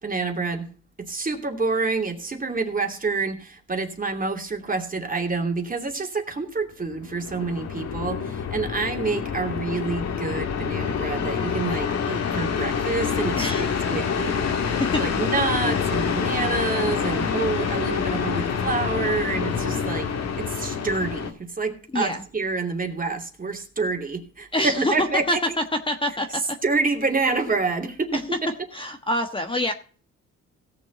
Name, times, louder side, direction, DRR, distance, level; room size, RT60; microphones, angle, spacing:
voice 1, 0.0-0.7 1.0-14.5 15.0-20.1 20.4-25.4 26.3-28.5, right 4 dB, 30° right, 4 dB, 2.7 m, -27 dB
sound 1, 6.9-21.3, left 6 dB, 60° left, 1.8 m, -27 dB
voice 2, 13.4-13.7 14.8-15.0 21.9-22.2 24.5-25.4 25.9-26.4 28.1-28.2 28.7-29.7, left 1 dB, 15° left, 6 dB, 1.3 m, -26 dB
17.5 x 6.8 x 4.0 m, 0.41 s
cardioid pair, 90°, 30 cm